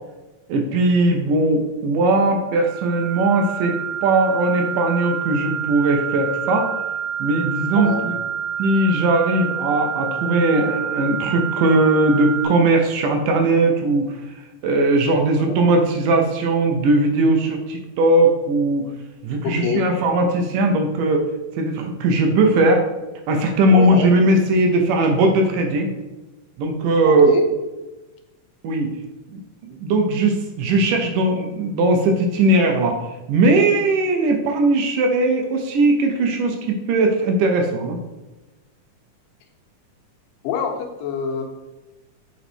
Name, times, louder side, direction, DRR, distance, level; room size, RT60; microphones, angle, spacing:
voice 1, 0.5-6.7 7.2-8.2 8.6-14.2 14.6-18.9 19.2-22.9 23.3-25.9 26.6-27.4 28.6-28.9 29.3-33.0 33.3-38.0, right 2 dB, 75° right, 3 dB, 2.2 m, -19 dB
sound 1, 2.5-12.4, right 8 dB, 30° right, 2.0 m, -28 dB
voice 2, 7.8-8.1 15.5-15.6 19.4-19.9 23.7-24.1 27.1-27.5 40.4-41.4, left 7 dB, 80° left, 3 dB, 2.5 m, -25 dB
7.0 x 4.3 x 4.3 m, 1.1 s
omnidirectional pair, 4.0 m